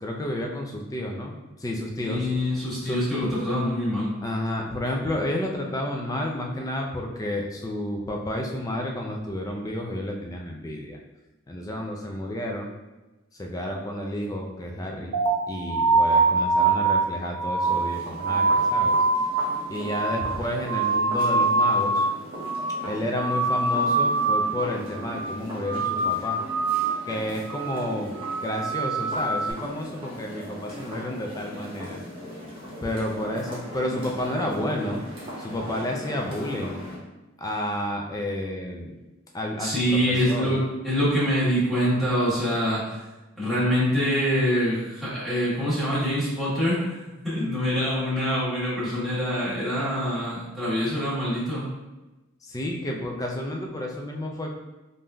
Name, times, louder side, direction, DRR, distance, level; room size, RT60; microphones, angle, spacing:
voice 1, 0.0-2.3 2.8-3.0 4.2-11.0 11.5-12.7 13.3-15.2 15.5-19.0 19.7-22.1 22.8-26.4 27.0-28.2 28.4-32.0 32.8-35.0 35.4-36.8 37.4-38.9 39.3-40.6 52.4-54.5, left 1 dB, 15° left, 1 dB, 0.3 m, -31 dB
voice 2, 2.0-4.1 39.6-43.0 43.4-51.6, equal, ahead, -12 dB, 1.2 m, -25 dB
sound 1, 15.1-22.1 22.4-22.9 23.1-24.6 24.9-25.3 25.6-27.1 27.4-27.8 28.1-29.5, right 3 dB, 75° right, 0.4 m, -24 dB
sound 2, 17.6-37.0, equal, 25° right, 0.7 m, -39 dB
3.4 x 2.6 x 2.3 m, 1.1 s
head